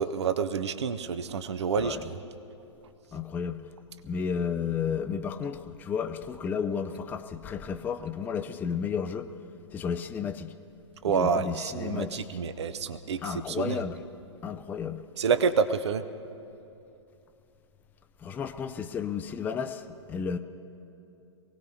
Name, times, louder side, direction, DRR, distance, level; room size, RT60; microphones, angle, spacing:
voice 1, 0.0-2.2 11.0-13.8 15.2-16.0, right 6 dB, 65° right, 12 dB, 0.7 m, -28 dB
voice 2, 3.1-3.6 4.0-9.3 9.7-10.5 11.1-12.4 13.2-14.0 14.4-15.0 18.2-20.4, left 6 dB, 10° left, 8 dB, 0.4 m, -32 dB
24.0 x 18.0 x 2.8 m, 2.8 s
figure-of-eight pair, 115°, 15 cm